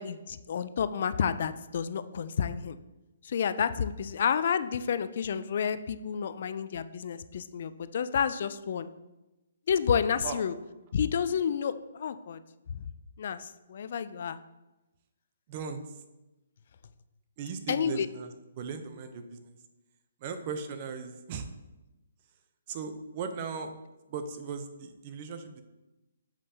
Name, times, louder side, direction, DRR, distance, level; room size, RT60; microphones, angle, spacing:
voice 1, 0.0-2.8 3.2-8.9 9.7-10.6 10.9-12.4 12.7-12.8 13.2-14.4 17.7-18.1, left 7 dB, 55° left, 13 dB, 0.3 m, -30 dB
voice 2, 15.5-16.0 17.4-19.6 20.2-21.5 22.7-23.7 24.1-25.6, right 5 dB, 40° right, 8 dB, 0.7 m, -38 dB
7.3 x 5.1 x 2.8 m, 1.0 s
hypercardioid pair, 140°, 0 cm